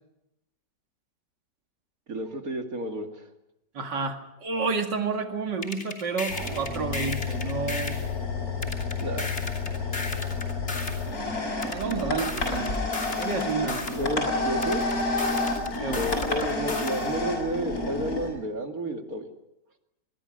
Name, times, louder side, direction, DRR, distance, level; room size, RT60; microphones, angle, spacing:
voice 1, 2.1-3.3 9.0-9.4 14.0-14.8 15.9-19.3, right 1 dB, 55° right, 5 dB, 2.7 m, -31 dB
voice 2, 3.7-8.0 11.6-12.7 13.2-13.8 15.8-16.0, right 4 dB, 90° right, 5 dB, 2.7 m, -30 dB
sound 1, 5.6-8.1 8.6-11.1 11.6-14.1 14.6-17.1, left 2 dB, 40° left, 3.2 m, -35 dB
sound 2, 6.3-18.3, left 3 dB, 60° left, 7.5 m, -30 dB
25.0 x 21.0 x 6.5 m, 0.87 s
omnidirectional pair, 1.8 m